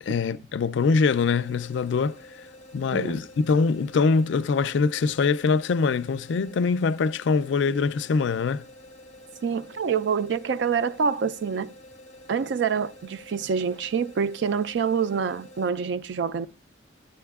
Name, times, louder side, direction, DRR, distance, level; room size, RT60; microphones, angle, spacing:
voice 1, 0.0-2.2 2.7-8.6, left 4 dB, 75° left, 0.4 m, -23 dB
sound 1, 0.8-15.7, left 1 dB, 35° left, 0.6 m, -49 dB
voice 2, 2.9-3.2 9.4-11.7 12.3-16.5, right 6 dB, 70° right, 0.4 m, -26 dB
13.5 x 9.2 x 2.3 m
head